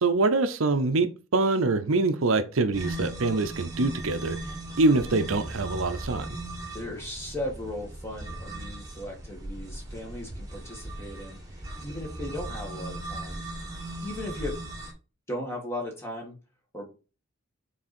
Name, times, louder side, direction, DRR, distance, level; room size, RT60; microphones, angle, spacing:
voice 1, 0.0-4.4 4.8-6.3, right 3 dB, 75° right, 0.7 m, -24 dB
sound 1, 2.7-14.9, right 1 dB, 15° right, 1.7 m, -38 dB
voice 2, 6.7-11.4 11.8-13.4 13.8-14.6 15.3-16.4 16.7-16.9, left 1 dB, 10° left, 1.8 m, -37 dB
6.3 x 4.1 x 4.3 m
head